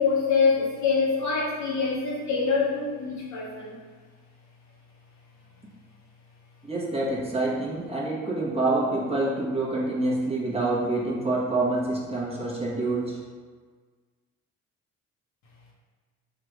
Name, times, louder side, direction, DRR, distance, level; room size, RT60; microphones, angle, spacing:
voice 1, 0.0-3.8, left 5 dB, 70° left, -4 dB, 1.2 m, -25 dB
voice 2, 6.7-13.2, right 2 dB, 20° right, -4 dB, 1.0 m, -27 dB
3.8 x 2.5 x 4.6 m, 1.5 s
cardioid pair, 90°, 30 cm